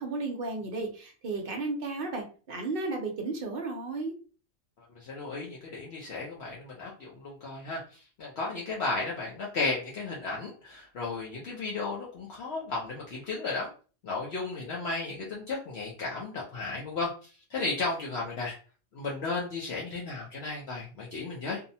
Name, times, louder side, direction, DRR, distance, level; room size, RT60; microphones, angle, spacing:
voice 1, 0.0-4.1, right 3 dB, 55° right, 2 dB, 0.7 m, -34 dB
voice 2, 4.9-13.7 14.0-18.6 18.9-21.6, left 3 dB, 65° left, -4 dB, 0.9 m, -34 dB
2.7 x 2.1 x 2.6 m, 0.37 s
omnidirectional pair, 1.3 m